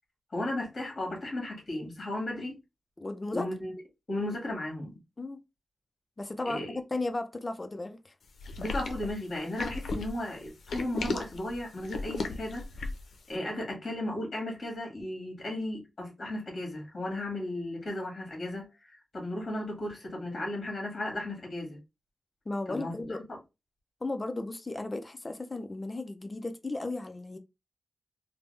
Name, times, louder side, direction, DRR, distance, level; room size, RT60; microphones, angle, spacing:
voice 1, 0.3-2.6 3.3-3.7 4.1-5.0 6.4-6.8 8.6-12.7 13.3-21.8 22.7-23.4, left 1 dB, 40° left, 1.5 m, -35 dB
voice 2, 3.0-3.5 5.2-5.4 6.2-8.0 22.5-23.2 24.0-27.4, left 2 dB, 25° left, 0.4 m, -35 dB
sound 1, 8.4-13.1, left 3 dB, 85° left, 0.5 m, -35 dB
3.3 x 2.0 x 3.1 m
wide cardioid pair, 160°, 0 cm